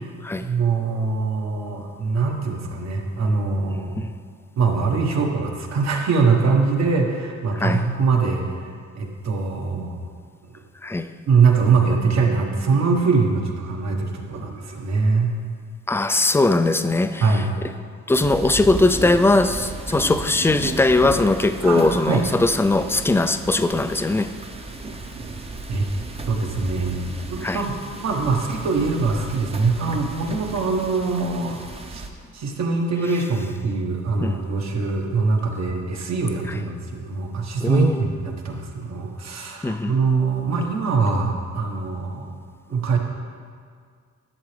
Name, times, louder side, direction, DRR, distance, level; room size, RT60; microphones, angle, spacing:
voice 1, 0.4-4.0 4.6-8.6 8.9-10.0 11.3-15.3 17.2-17.5 21.6-22.2 25.7-25.8 26.3-31.6 31.9-32.0 32.3-42.4 42.7-43.0, right 4 dB, 60° right, 1.4 m, -23 dB
voice 2, 15.9-17.4 18.1-24.3 27.4-27.6 34.2-34.4 37.6-38.0 39.6-39.9, left 2 dB, 10° left, 0.3 m, -20 dB
sound 1, 18.1-32.1, right 3 dB, 20° right, 0.7 m, -34 dB
11.5 x 7.1 x 3.3 m
cardioid pair, 90°, 30 cm